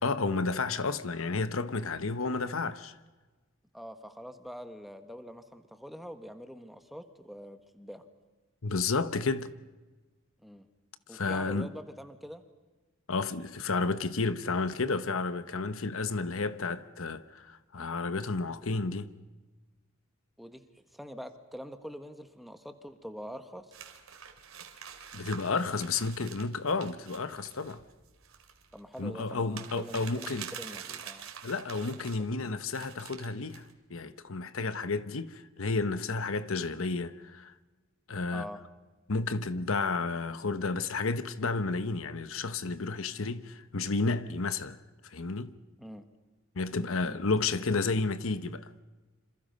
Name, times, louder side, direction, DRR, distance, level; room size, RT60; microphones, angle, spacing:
voice 1, 0.0-2.9 8.6-9.5 11.1-11.7 13.1-19.1 25.1-27.8 29.0-30.5 31.4-37.5 38.1-38.4 39.1-44.8 45.0-45.5 46.6-48.7, left 3 dB, 75° left, 1.0 m, -31 dB
voice 2, 3.7-8.0 10.4-10.7 11.1-12.4 20.4-23.7 28.7-30.1 30.5-31.3 31.9-32.0 38.3-38.6 45.8-46.1 47.1-47.2, equal, ahead, 1.6 m, -45 dB
sound 1, 23.7-32.2 32.7-33.7, right 8 dB, 75° right, 2.9 m, -46 dB
27.5 x 27.0 x 5.4 m
head